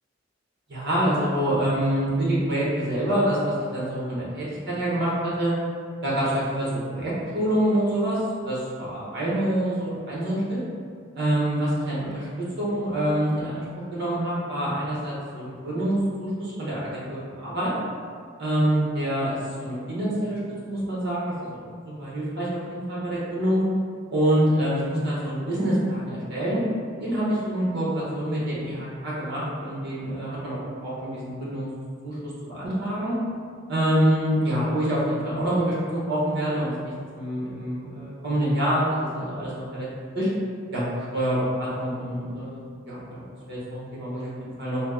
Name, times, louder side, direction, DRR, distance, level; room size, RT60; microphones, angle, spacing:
voice 1, 0.7-5.5 6.0-10.6 11.1-12.3 12.6-13.6 13.9-17.7 18.4-23.6 24.1-26.6 27.0-31.7 32.0-33.1 33.7-36.7 37.1-39.9 40.1-40.3 40.7-40.9 41.1-43.2 43.5-44.8, right 1 dB, 60° right, -7 dB, 1.0 m, -26 dB
2.9 x 2.0 x 3.5 m, 2.1 s
head